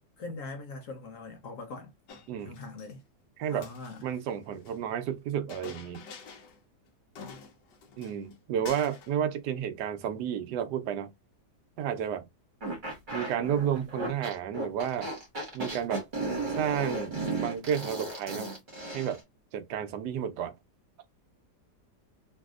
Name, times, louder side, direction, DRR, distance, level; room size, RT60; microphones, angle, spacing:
voice 1, 0.2-1.9 2.4-3.0 3.5-4.1, left 3 dB, 65° left, 0.9 m, -41 dB
Chink clink, 2.1-2.9 3.5-4.8 5.5-6.6 6.9-7.0 7.2-8.4 8.6-9.2, left 5 dB, 90° left, 1.4 m, -48 dB
voice 2, 4.0-6.0 8.0-11.1 11.8-12.3 13.1-15.1 15.5-16.0 16.6-18.5 18.9-19.2 19.5-20.5, right 9 dB, 75° right, 1.1 m, -31 dB
sound 1, 12.6-19.2, right 2 dB, 30° right, 1.3 m, -35 dB
3.2 x 2.6 x 2.3 m
omnidirectional pair, 1.8 m